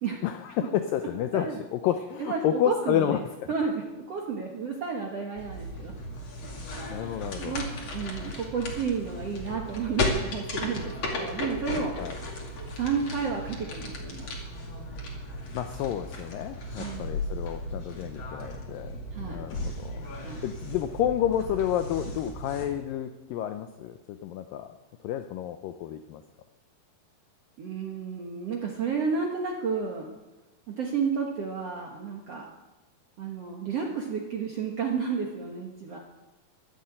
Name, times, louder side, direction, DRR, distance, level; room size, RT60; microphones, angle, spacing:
voice 1, 0.2-1.5 1.7-3.2 6.9-7.6 12.0-12.1 15.5-20.1 20.4-24.8 25.0-26.2, left 10 dB, 85° left, 8 dB, 1.9 m, -30 dB
voice 2, 2.2-3.2 3.5-5.9 6.7-12.2 12.8-14.3 16.7-17.2 19.1-19.4 20.2-20.4 27.6-30.1 30.7-32.5 33.2-36.0, right 5 dB, 65° right, 0 dB, 1.6 m, -32 dB
sound 1, 5.4-22.7, left 1 dB, 40° left, 3.0 m, -35 dB
12.5 x 12.0 x 8.7 m, 1.1 s
omnidirectional pair, 4.9 m